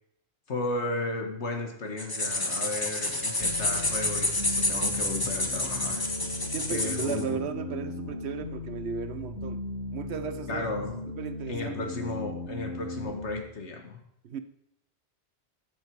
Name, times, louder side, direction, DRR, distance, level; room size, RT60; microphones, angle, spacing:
voice 1, 0.5-6.1 6.7-7.4 10.5-11.0 11.5-14.0, left 2 dB, 90° left, 4 dB, 1.9 m, -34 dB
Wind instrument woodwind instrument, 2.0-6.7, right 1 dB, 50° left, 2.4 m, -48 dB
sound 1, 2.0-7.2, left 2 dB, 20° left, 1.2 m, -29 dB
sound 2, 3.4-13.4, left 2 dB, 75° left, 2.0 m, -37 dB
voice 2, 6.5-9.6 9.9-10.7 11.1-11.9 14.2-14.4, right 6 dB, 75° right, 11 dB, 1.1 m, -35 dB
13.5 x 7.6 x 4.7 m, 0.76 s
omnidirectional pair, 1.1 m